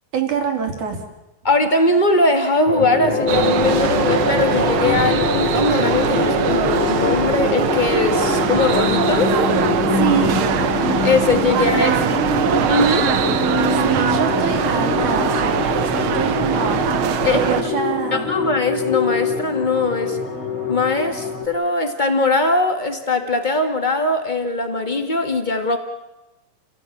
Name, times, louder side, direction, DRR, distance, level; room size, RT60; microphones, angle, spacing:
voice 1, 0.1-1.0 9.9-10.4 11.7-12.2 13.7-17.0 17.3-18.3, right 7 dB, 60° right, 4 dB, 4.4 m, -25 dB
voice 2, 1.4-9.4 11.0-11.9 12.7-13.1 17.2-17.4 18.1-20.2 20.7-25.8, left 2 dB, 20° left, 6 dB, 1.3 m, -20 dB
sound 1, 2.7-21.5, left 4 dB, 40° left, 3.2 m, -23 dB
sound 2, 3.3-17.6, right 9 dB, 85° right, 1.1 m, -22 dB
30.0 x 16.5 x 8.7 m, 1.0 s
omnidirectional pair, 3.9 m